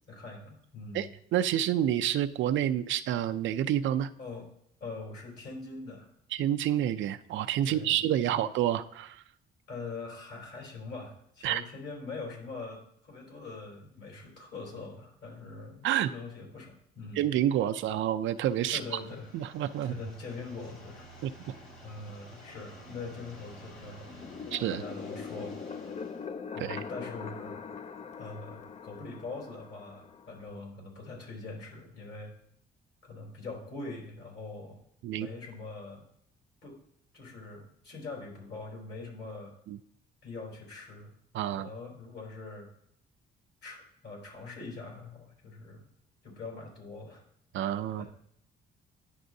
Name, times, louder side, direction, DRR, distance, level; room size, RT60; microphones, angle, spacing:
voice 1, 0.1-1.1 4.2-4.5 4.8-6.1 7.7-8.0 8.3-8.5 9.7-17.2 18.7-19.3 19.8-24.4 24.7-25.6 26.5-27.7 28.2-32.3 33.0-34.8 35.1-36.0 36.6-36.8 37.1-39.5 40.2-41.1 41.5-42.7 43.6-45.9 46.2-47.2 48.0-48.1, left 3 dB, 60° left, -1 dB, 3.4 m, -43 dB
voice 2, 0.9-4.1 6.3-9.2 11.4-11.6 15.8-16.1 17.2-18.8 19.3-19.9 21.2-21.3 24.5-24.8 26.6-26.8 35.0-35.3 39.7-39.8 41.3-41.7 47.5-48.1, right 11 dB, 75° right, 10 dB, 0.4 m, -28 dB
sound 1, 18.2-26.3, equal, 80° left, 2.2 m, -52 dB
sound 2, 24.1-30.6, left 6 dB, 35° left, 0.4 m, -42 dB
10.0 x 6.1 x 2.7 m, 0.69 s
cardioid pair, 90°, 20 cm